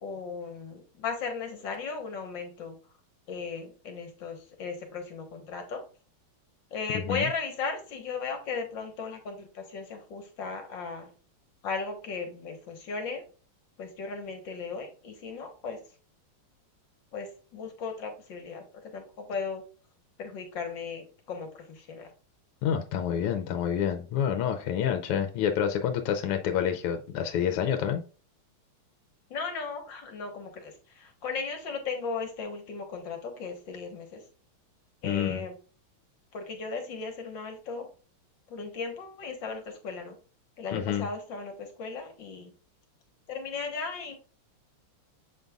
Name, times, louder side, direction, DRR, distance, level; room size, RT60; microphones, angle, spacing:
voice 1, 0.0-2.8 3.3-5.8 6.7-11.1 11.6-13.2 13.8-15.8 17.1-19.6 20.2-22.1 29.3-34.2 35.0-35.5 36.3-37.9 38.5-40.2 40.6-42.5 43.3-44.2, left 4 dB, 60° left, 1.8 m, -36 dB
voice 2, 6.9-7.3 22.6-28.0 35.0-35.5 40.7-41.1, left 9 dB, 90° left, 1.7 m, -28 dB
7.7 x 5.2 x 2.3 m
omnidirectional pair, 2.4 m